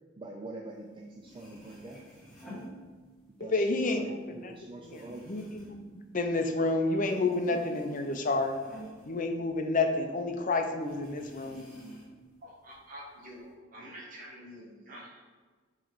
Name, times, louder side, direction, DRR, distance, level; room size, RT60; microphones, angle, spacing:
voice 1, 0.2-2.0 3.3-5.4, right 2 dB, 25° right, 0 dB, 0.4 m, -45 dB
sound 1, 0.9-1.0 1.2-3.4 3.8-6.7 7.0-10.0 10.3-10.4 10.8-12.3 12.7-13.5, right 1 dB, ahead, 1.6 m, -50 dB
voice 2, 3.4-4.5 4.8-5.7 6.1-8.5 9.1-11.7, left 3 dB, 45° left, 5 dB, 0.6 m, -30 dB
voice 3, 12.4-15.2, equal, 45° right, -4 dB, 1.1 m, -47 dB
7.6 x 3.2 x 4.0 m, 1.4 s
head